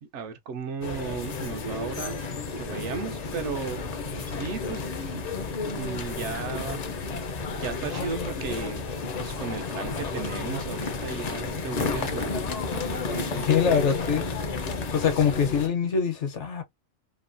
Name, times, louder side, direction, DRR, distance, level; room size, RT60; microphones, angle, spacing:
voice 1, 0.0-2.2 2.6-3.8 4.3-5.3 5.7-6.8 7.6-8.8 9.2-12.4 12.7-13.5, right 5 dB, 75° right, 0.9 m, -35 dB
sound 1, 0.8-15.7, left 4 dB, 55° left, 0.4 m, -32 dB
voice 2, 13.3-14.2 14.9-16.6, left 7 dB, 70° left, 1.0 m, -24 dB
3.0 x 2.1 x 2.5 m
omnidirectional pair, 1.3 m